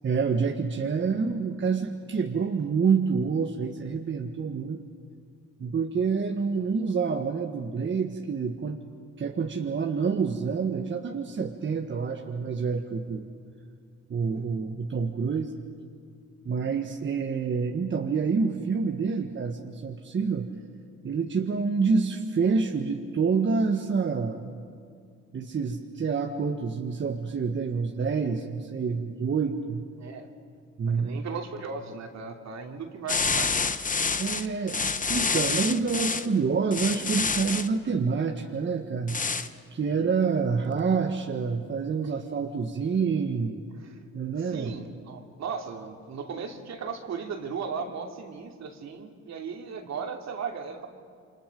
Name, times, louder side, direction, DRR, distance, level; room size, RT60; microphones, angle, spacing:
voice 1, 0.0-4.8 5.6-8.8 9.2-13.3 14.1-15.5 16.4-20.5 21.0-24.5 25.3-29.8 30.8-31.2 34.2-39.2 39.7-43.6 44.1-44.7, right 5 dB, 40° right, 2 dB, 1.5 m, -27 dB
voice 2, 30.0-30.3 30.9-33.5 42.0-42.2 43.7-44.0 44.4-50.9, right 5 dB, 60° right, 2 dB, 2.8 m, -37 dB
sound 1, 33.1-36.3 36.7-37.7 39.1-39.5, left 4 dB, 25° left, 1.0 m, -27 dB
28.5 x 25.5 x 5.3 m, 2.3 s
cardioid pair, 90°, 30 cm